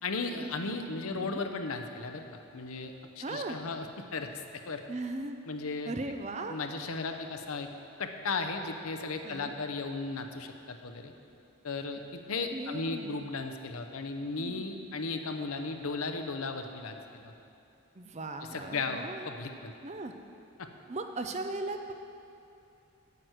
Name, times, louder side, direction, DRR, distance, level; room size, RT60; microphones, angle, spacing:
voice 1, 0.0-4.3 4.7-4.8 5.5-5.9 6.5-7.7 8.0-11.1 11.6-17.3 18.5-19.7 20.6-20.7, left 3 dB, 70° left, 6 dB, 0.7 m, -36 dB
voice 2, 1.1-1.4 3.2-3.6 4.9-5.4 5.8-6.6 9.2-9.5 12.5-13.1 14.4-14.7 17.9-19.3 19.8-20.1 20.9-21.9, right 2 dB, 30° right, 6 dB, 0.5 m, -38 dB
9.2 x 6.0 x 8.0 m, 2.7 s
head